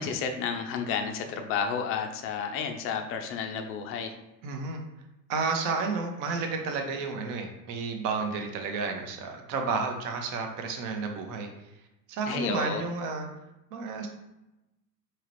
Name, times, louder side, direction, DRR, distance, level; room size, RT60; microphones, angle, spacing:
voice 1, 0.0-4.1 12.3-12.8, left 6 dB, 30° left, 5 dB, 0.5 m, -31 dB
voice 2, 4.4-4.8 5.3-11.7 12.1-13.3 13.7-14.1, right 4 dB, 40° right, 3 dB, 0.8 m, -31 dB
4.8 x 3.0 x 3.1 m, 0.94 s
figure-of-eight pair, 80°, 50 cm